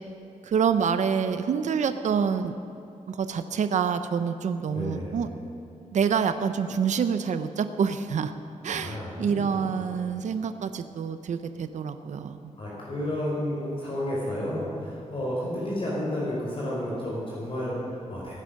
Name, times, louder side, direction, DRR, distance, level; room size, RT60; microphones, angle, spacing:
voice 1, 0.4-2.5 3.1-5.3 5.9-8.3 8.6-12.5, right 6 dB, 70° right, 10 dB, 0.6 m, -27 dB
voice 2, 4.7-5.3 8.6-9.9 12.6-18.3, left 1 dB, 45° left, -5 dB, 4.0 m, -31 dB
16.5 x 10.0 x 6.4 m, 2.7 s
wide cardioid pair, 110°, 13 cm